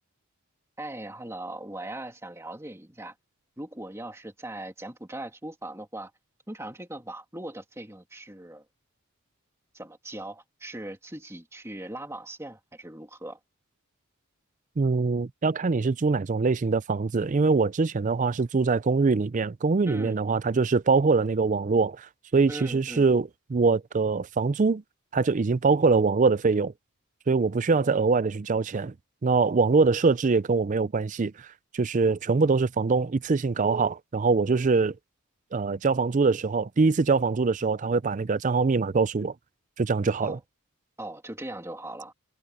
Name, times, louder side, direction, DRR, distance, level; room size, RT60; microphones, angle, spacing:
voice 1, 0.8-3.1 3.6-6.1 6.5-8.6 9.7-13.4 19.9-20.2 22.5-23.1 40.2-40.4 41.0-42.1, right 1 dB, 10° right, 2.6 m, -39 dB
voice 2, 14.8-22.1 22.3-24.8 25.1-26.7 27.3-28.9 29.2-31.3 31.7-34.9 35.5-39.3 39.8-40.4, right 4 dB, 35° right, 0.4 m, -23 dB
head